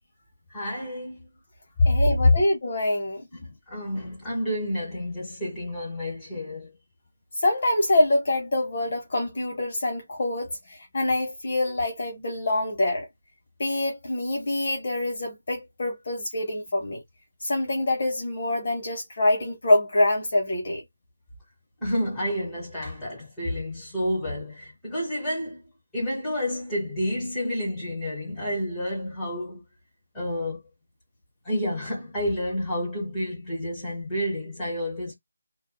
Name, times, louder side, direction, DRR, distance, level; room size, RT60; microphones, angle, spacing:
voice 1, 0.5-1.3 1.9-2.0 3.3-6.7 21.8-25.6 25.9-29.7 30.1-30.6 31.4-35.1, equal, 5° left, 1.4 m, -30 dB
voice 2, 1.8-3.3 7.3-13.1 13.6-17.0 17.4-20.8, left 1 dB, 40° left, 0.8 m, -25 dB
2.5 x 2.2 x 2.2 m
figure-of-eight pair, 175°, 0 cm